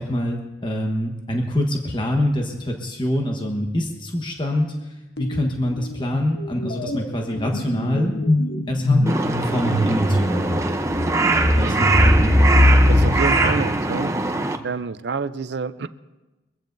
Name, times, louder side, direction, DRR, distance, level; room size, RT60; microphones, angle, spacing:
voice 1, 0.0-8.2 8.7-10.7 11.6-12.3, left 1 dB, 25° left, 1 dB, 1.2 m, -25 dB
sound 1, 5.2-5.5 5.8-14.5, left 1 dB, 65° left, 1.1 m, -21 dB
Crow, 9.1-14.6, right 2 dB, 15° right, 0.7 m, -22 dB
voice 2, 11.5-11.9 12.9-14.1 14.6-15.9, right 4 dB, 65° right, 13 dB, 0.5 m, -28 dB
23.0 x 14.5 x 2.7 m, 1.1 s
head